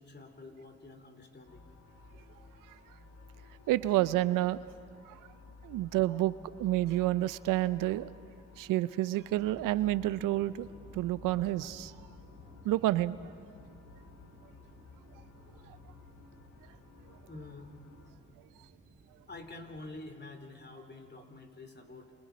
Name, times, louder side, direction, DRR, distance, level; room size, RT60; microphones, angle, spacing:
voice 1, 0.0-1.7 17.3-17.7 19.3-22.1, left 2 dB, 35° left, 6 dB, 3.2 m, -48 dB
sound 1, 1.4-18.1, left 4 dB, 65° left, 2.4 m, -55 dB
voice 2, 3.7-4.6 5.1-5.2 5.6-6.3 6.6-8.1 8.6-10.7 10.9-11.9 12.6-13.2, right 15 dB, 85° right, 17 dB, 0.6 m, -29 dB
sound 2, 9.3-20.1, right 3 dB, 35° right, 2.2 m, -59 dB
28.5 x 27.5 x 5.2 m, 2.3 s
supercardioid pair, 60°, 31 cm